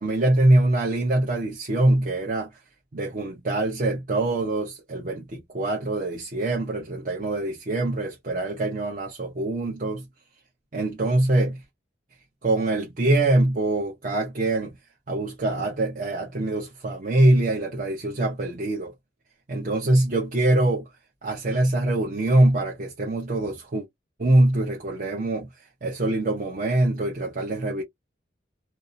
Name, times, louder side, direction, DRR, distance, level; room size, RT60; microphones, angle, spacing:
voice 1, 0.0-2.5 2.9-10.0 10.7-11.6 12.4-14.7 15.1-18.9 19.5-20.9 21.2-23.9 24.2-25.5 25.8-27.8, right 2 dB, 45° right, 0.6 m, -23 dB
2.6 x 2.0 x 2.5 m
head